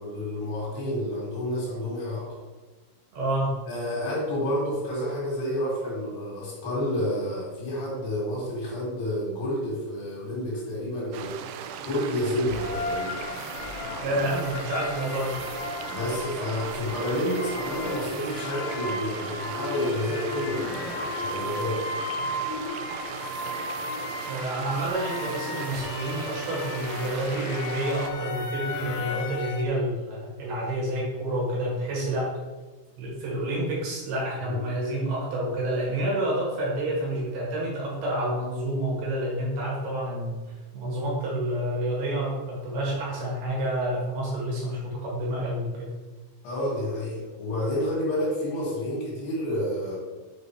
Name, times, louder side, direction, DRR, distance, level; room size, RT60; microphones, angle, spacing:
voice 1, 0.0-2.4 3.7-11.4 11.8-13.2 15.9-21.9 34.4-34.6 46.4-50.0, left 1 dB, 65° left, -4 dB, 3.9 m, -29 dB
voice 2, 3.1-3.6 14.0-15.4 24.2-32.3 33.0-40.4 40.7-45.9, right 1 dB, 65° right, -4 dB, 3.5 m, -29 dB
sound 1, 11.1-28.1, right 8 dB, 85° right, 2.4 m, -38 dB
sound 2, 12.5-29.7, left 3 dB, 80° left, 3.0 m, -35 dB
7.5 x 5.3 x 4.6 m, 1.3 s
omnidirectional pair, 5.4 m